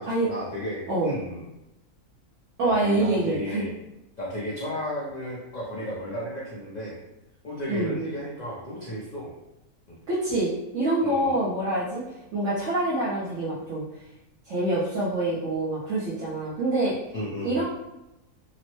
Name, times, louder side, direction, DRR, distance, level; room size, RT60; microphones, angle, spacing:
voice 1, 0.0-1.4 2.6-3.7 4.2-7.0 7.4-9.3 9.9-10.0 11.0-11.4 17.1-17.6, equal, 65° left, -6 dB, 0.4 m, -34 dB
voice 2, 2.6-3.6 7.7-7.9 10.1-12.0 12.3-13.8 14.5-17.0 17.4-17.6, right 2 dB, 65° right, -9 dB, 1.0 m, -26 dB
3.0 x 2.0 x 2.9 m, 0.92 s
omnidirectional pair, 1.5 m